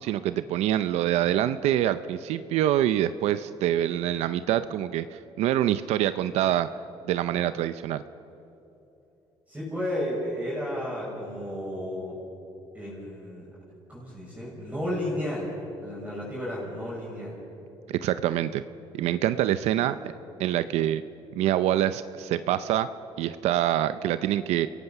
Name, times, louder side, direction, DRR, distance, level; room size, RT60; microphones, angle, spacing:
voice 1, 0.0-6.7 7.1-8.0 17.9-18.6 18.9-20.0 20.4-21.0 21.3-22.9 23.2-24.7, right 12 dB, 85° right, 12 dB, 0.6 m, -25 dB
voice 2, 9.5-12.2 12.7-13.5 13.9-17.4 19.8-19.9, left 1 dB, 15° right, -6 dB, 6.4 m, -33 dB
29.5 x 17.0 x 5.9 m, 2.9 s
cardioid pair, 115°, 11 cm